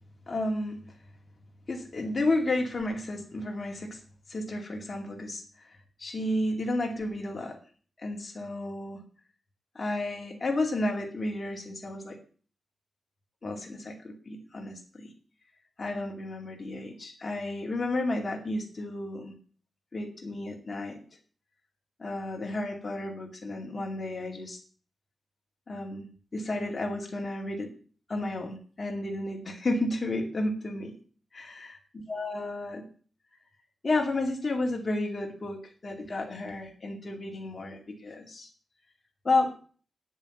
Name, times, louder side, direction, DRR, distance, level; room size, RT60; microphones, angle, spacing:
voice 1, 0.3-0.8 1.7-4.0 4.3-5.7 6.0-7.6 8.0-9.0 9.7-12.2 13.4-15.1 15.8-19.3 19.9-21.0 22.0-24.6 25.7-27.7 28.1-30.9 31.3-31.4 32.1-32.9 33.8-38.5 39.2-39.5, left 2 dB, 30° left, 1 dB, 2.5 m, -32 dB
9.6 x 7.2 x 7.8 m, 0.42 s
wide cardioid pair, 160°, 0 cm